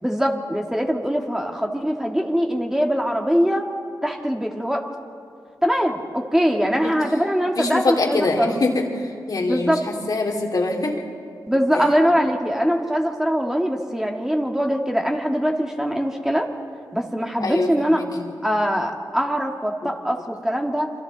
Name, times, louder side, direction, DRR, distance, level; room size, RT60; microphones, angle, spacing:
voice 1, 0.0-3.7 4.0-4.9 5.6-8.5 9.5-9.8 11.5-16.5 16.9-18.0 18.4-20.9, equal, 5° right, 1 dB, 1.9 m, -22 dB
voice 2, 7.6-11.0 11.7-11.8 17.4-18.3, left 2 dB, 55° left, 1 dB, 2.7 m, -24 dB
26.5 x 24.5 x 4.0 m, 2.3 s
cardioid pair, 75°, 8 cm